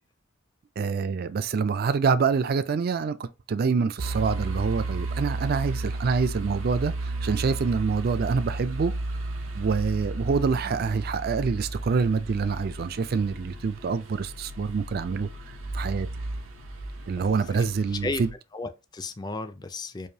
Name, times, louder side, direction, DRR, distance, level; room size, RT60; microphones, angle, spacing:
voice 1, 0.8-8.9 9.5-15.3 15.7-16.1 17.1-18.3, right 5 dB, 50° right, 0.4 m, -26 dB
sound 1, 4.0-18.3, right 2 dB, 90° right, 0.7 m, -34 dB
voice 2, 17.1-18.2 18.5-20.1, left 3 dB, 20° left, 0.4 m, -35 dB
4.8 x 2.6 x 2.7 m
head